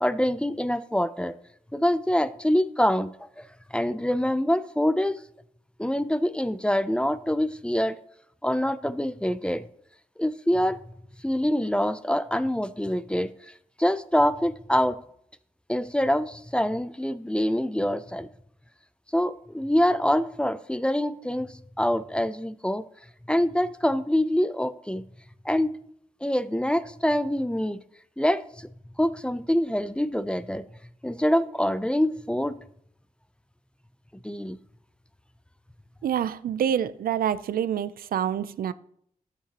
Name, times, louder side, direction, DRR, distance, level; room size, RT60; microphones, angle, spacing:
voice 1, 0.0-1.3 1.7-3.5 3.7-5.2 5.8-8.0 8.4-9.6 10.2-10.8 11.2-13.3 13.8-15.0 15.7-18.3 19.1-22.8 23.3-25.0 25.5-25.7 26.2-27.8 28.2-28.7 29.0-30.6 31.0-32.6 34.2-34.6, equal, 5° left, 0.5 m, -25 dB
voice 2, 36.0-38.7, right 9 dB, 90° right, 0.4 m, -27 dB
12.5 x 8.4 x 2.9 m
cardioid pair, 65°, 15 cm